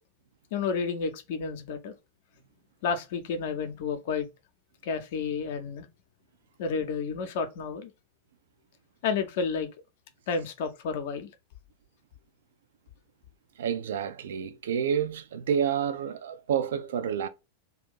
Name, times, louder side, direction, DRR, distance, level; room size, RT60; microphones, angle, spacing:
voice 1, 0.5-1.9 2.8-4.3 4.8-5.9 6.6-7.9 9.0-9.7 10.3-11.3, left 5 dB, 50° left, 0.6 m, -31 dB
voice 2, 13.6-17.3, right 8 dB, 60° right, 0.4 m, -29 dB
2.5 x 2.4 x 3.7 m
figure-of-eight pair, 90°, 0 cm